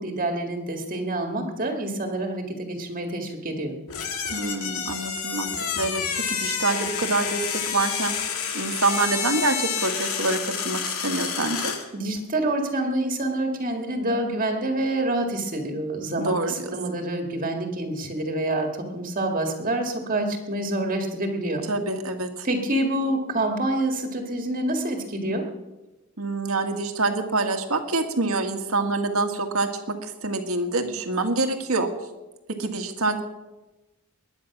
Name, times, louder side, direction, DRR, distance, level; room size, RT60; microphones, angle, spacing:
voice 1, 0.0-3.7 11.9-21.6 22.4-25.4, right 1 dB, 40° right, 3 dB, 1.9 m, -27 dB
sound 1, 3.9-11.9, left 7 dB, 80° left, 2.0 m, -29 dB
voice 2, 4.3-8.1 8.5-11.7 16.2-16.7 21.7-22.5 26.2-31.9 32.5-33.2, right 3 dB, 75° right, 6 dB, 1.9 m, -26 dB
21.0 x 9.7 x 6.0 m, 1.1 s
head